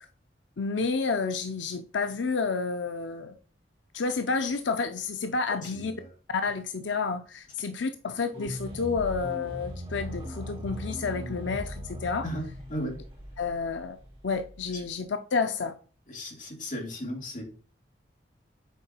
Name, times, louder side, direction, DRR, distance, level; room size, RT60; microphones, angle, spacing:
voice 1, 0.6-3.4 3.9-5.9 6.3-12.3 13.4-14.0 14.2-15.7, left 4 dB, 90° left, 0.6 m, -30 dB
sound 1, 8.3-14.9, equal, 30° right, 3.9 m, -39 dB
voice 2, 16.1-17.4, equal, 45° left, 2.6 m, -34 dB
6.9 x 4.7 x 4.4 m
head